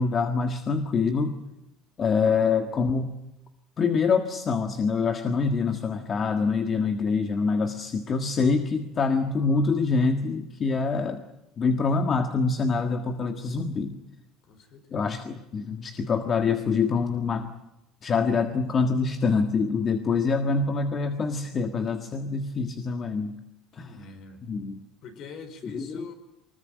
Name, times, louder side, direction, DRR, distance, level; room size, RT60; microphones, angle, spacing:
voice 1, 0.0-1.4 2.0-3.1 3.8-11.2 11.6-14.0 14.9-17.5 18.0-23.3 23.7-23.9 24.5-24.8 25.7-26.0, left 4 dB, 30° left, 6 dB, 1.6 m, -25 dB
voice 2, 14.4-15.2 23.8-24.4 25.0-26.1, left 4 dB, 50° left, 9 dB, 4.9 m, -43 dB
24.0 x 20.5 x 9.4 m, 0.92 s
cardioid pair, 150°, 0 cm